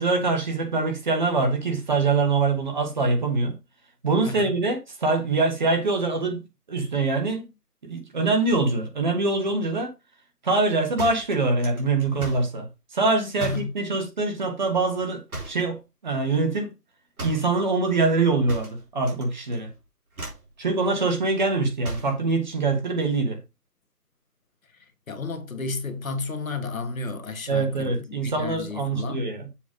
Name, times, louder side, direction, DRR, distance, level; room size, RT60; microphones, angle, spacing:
voice 1, 0.0-3.5 4.0-6.4 6.7-7.4 7.8-9.9 10.4-12.7 12.9-15.2 15.5-16.7 17.2-19.7 20.6-23.4 27.5-29.5, right 3 dB, 30° right, 1.3 m, -24 dB
voice 2, 4.2-4.6 13.4-13.7 25.1-29.3, left 3 dB, 60° left, 1.5 m, -32 dB
sound 1, 11.0-12.5 13.4-13.8 15.3-15.7 17.2-17.5 18.5-19.3 19.5-19.8 20.1-20.5 21.8-22.2, right 2 dB, 65° right, 3.4 m, -36 dB
7.2 x 3.3 x 6.1 m
figure-of-eight pair, 160°, 47 cm